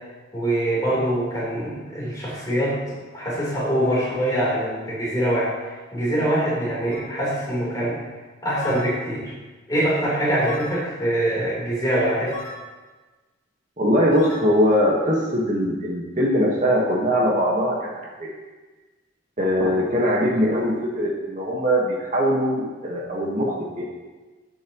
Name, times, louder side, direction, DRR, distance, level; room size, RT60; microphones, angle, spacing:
voice 1, 0.3-8.0 8.4-9.3 9.7-12.4, right 1 dB, 20° left, -6 dB, 3.7 m, -24 dB
sound 1, 6.9-7.1 8.6-8.9 10.4-10.8 12.3-12.6 14.1-14.4, left 2 dB, 35° left, 2.5 m, -34 dB
voice 2, 13.8-18.3 19.4-23.9, equal, 40° right, -3 dB, 1.5 m, -21 dB
17.5 x 7.2 x 3.1 m, 1.3 s
head